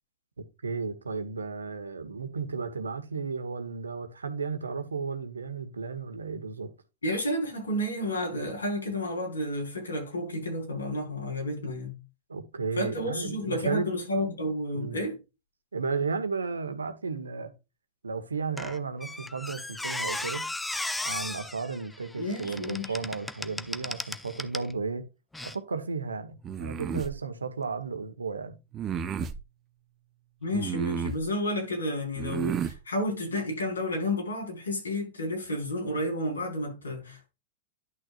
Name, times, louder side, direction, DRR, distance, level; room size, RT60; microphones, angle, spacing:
voice 1, 0.4-6.7 12.3-13.9 14.7-15.0 15.7-17.5 18.0-20.5 21.0-25.1 25.4-28.6, right 4 dB, 85° right, 1.3 m, -34 dB
voice 2, 7.0-12.0 12.8-15.2 22.2-22.9 30.4-37.3, left 1 dB, 85° left, 4.5 m, -31 dB
Squeak, 18.6-24.7 25.3-25.5, left 2 dB, 5° left, 0.6 m, -36 dB
sound 1, 26.4-27.1 28.7-29.4 30.5-31.3 32.2-32.8, right 7 dB, 30° right, 0.9 m, -32 dB
11.0 x 6.3 x 2.5 m
figure-of-eight pair, 95°, 0 cm